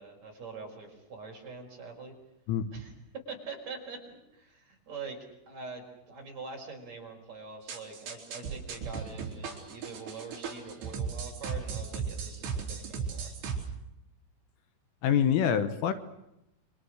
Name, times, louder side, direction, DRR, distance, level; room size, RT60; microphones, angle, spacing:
voice 1, 0.0-2.1 2.7-13.3, right 4 dB, 35° right, 1 dB, 5.9 m, -44 dB
sound 1, 7.7-13.7, right 6 dB, 55° right, 5.3 m, -36 dB
voice 2, 15.0-15.9, left 8 dB, 75° left, 10 dB, 3.7 m, -25 dB
29.5 x 24.5 x 6.5 m, 0.86 s
omnidirectional pair, 5.9 m